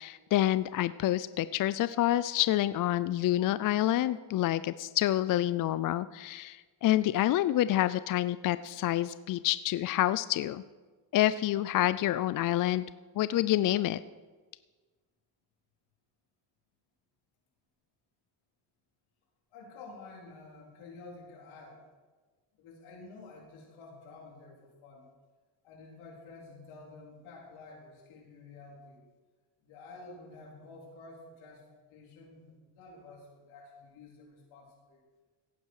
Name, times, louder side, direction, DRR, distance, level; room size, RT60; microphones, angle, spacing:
voice 1, 0.0-10.6 11.1-12.8 13.2-14.0, left 14 dB, 45° left, 15 dB, 0.4 m, -28 dB
voice 2, 19.5-21.8 22.5-25.1 25.6-29.0 29.6-35.0, left 3 dB, 75° left, -1 dB, 4.1 m, -50 dB
17.0 x 9.4 x 4.8 m, 1.3 s
cardioid pair, 95°, 49 cm